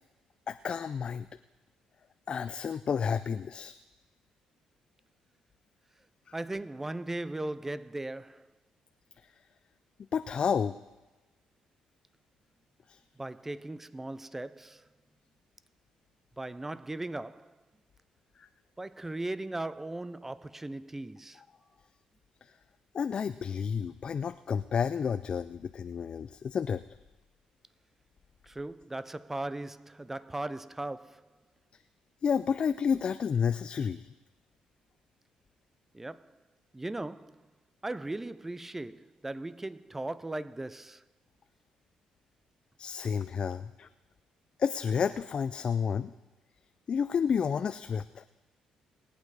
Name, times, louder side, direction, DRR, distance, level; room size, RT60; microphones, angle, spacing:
voice 1, 0.5-1.3 2.3-3.7 6.3-6.4 10.1-10.7 12.9-13.0 18.4-18.5 22.4-22.5 22.9-26.8 32.2-34.1 42.8-43.9 44.6-46.1 46.9-48.3, left 7 dB, 45° left, 0.4 m, -30 dB
voice 2, 6.3-8.5 13.2-14.9 16.4-17.5 18.8-21.4 28.5-31.3 35.9-36.3 36.7-37.5 37.8-41.0, right 2 dB, 15° right, 0.5 m, -38 dB
20.0 x 8.6 x 4.8 m
cardioid pair, 85°, 2 cm